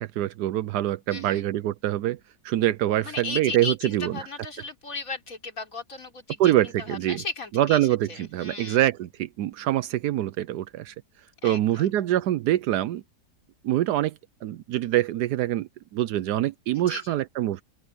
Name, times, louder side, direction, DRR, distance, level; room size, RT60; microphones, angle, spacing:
voice 1, 0.0-2.2 2.4-4.1 6.4-7.2 7.5-10.9 11.4-13.0 13.6-17.6, right 13 dB, 80° right, 1.2 m, -25 dB
voice 2, 1.1-1.4 3.0-8.8 11.4-11.9 16.7-17.2, left 4 dB, 55° left, 4.0 m, -36 dB
open air
omnidirectional pair, 1.7 m